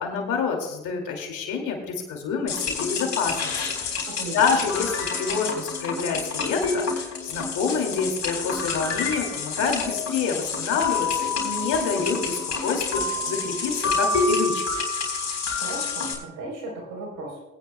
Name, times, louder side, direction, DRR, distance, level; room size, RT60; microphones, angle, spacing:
voice 1, 0.0-3.6 3.8-4.0 4.3-14.6, left 5 dB, 80° left, 3 dB, 2.4 m, -27 dB
sound 1, 2.5-16.2, left 4 dB, 65° left, 3.9 m, -28 dB
voice 2, 4.1-4.6 15.5-17.4, right 2 dB, 90° right, -1 dB, 3.7 m, -36 dB
20.0 x 9.6 x 2.2 m, 1.0 s
supercardioid pair, 55°, 29 cm